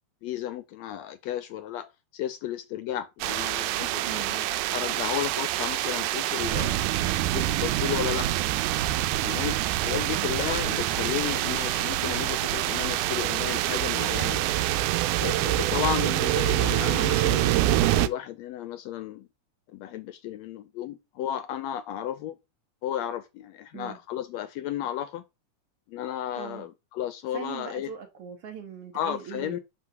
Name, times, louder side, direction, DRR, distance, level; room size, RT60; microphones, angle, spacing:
voice 1, 0.2-6.8 7.3-8.3 9.2-9.6 9.8-17.6 17.9-19.3 19.7-22.4 22.8-25.2 25.9-27.9 28.9-29.6, left 11 dB, 80° left, 1.6 m, -33 dB
sound 1, 3.2-18.1, right 14 dB, 90° right, 2.1 m, -26 dB
voice 2, 4.0-4.4 10.1-10.3 15.5-15.9 23.7-24.0 26.4-26.7 27.3-29.6, right 8 dB, 60° right, 1.8 m, -40 dB
8.4 x 4.0 x 5.9 m
omnidirectional pair, 3.5 m